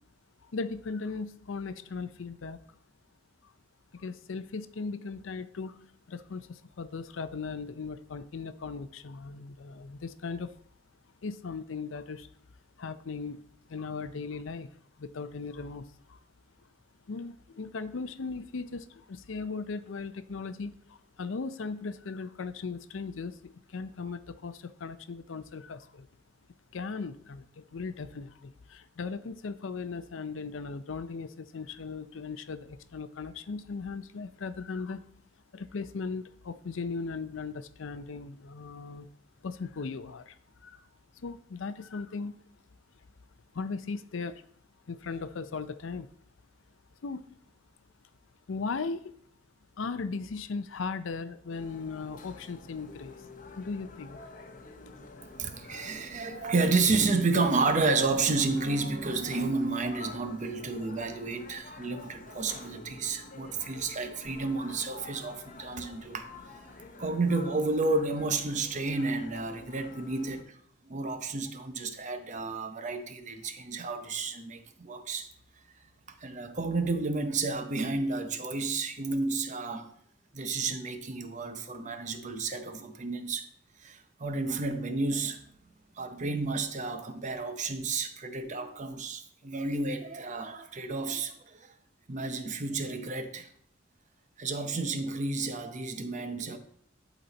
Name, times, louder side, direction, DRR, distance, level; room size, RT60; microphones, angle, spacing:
voice 1, 0.4-2.8 3.4-3.5 3.9-10.5 11.2-12.3 12.8-16.2 16.6-16.7 17.1-26.1 26.7-35.1 35.5-39.1 39.4-40.9 41.1-42.4 43.5-44.4 44.9-46.1 47.0-47.4 48.5-49.1 49.8-53.3 53.6-54.2, left 4 dB, 85° left, 0.5 m, -38 dB
sound 1, 51.5-70.4, left 3 dB, 45° left, 0.8 m, -48 dB
voice 2, 55.2-66.3 67.0-70.6 70.8-75.3 76.2-79.9 80.3-83.5 83.8-85.4 86.0-91.7 92.1-93.5 94.4-96.6, right 3 dB, 40° right, 0.7 m, -31 dB
11.0 x 4.1 x 4.1 m
head